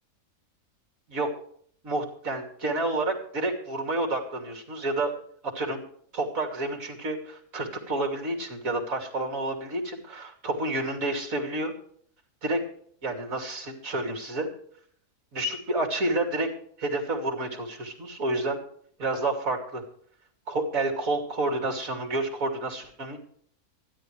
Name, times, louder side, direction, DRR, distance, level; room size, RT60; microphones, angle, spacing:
voice 1, 1.8-5.1 5.4-5.8 6.1-11.7 12.4-12.6 13.0-14.5 15.3-16.5 16.8-18.6 19.0-19.8 20.5-23.2, right 2 dB, 65° right, 3 dB, 3.2 m, -29 dB
25.5 x 10.0 x 3.3 m, 0.62 s
omnidirectional pair, 1.6 m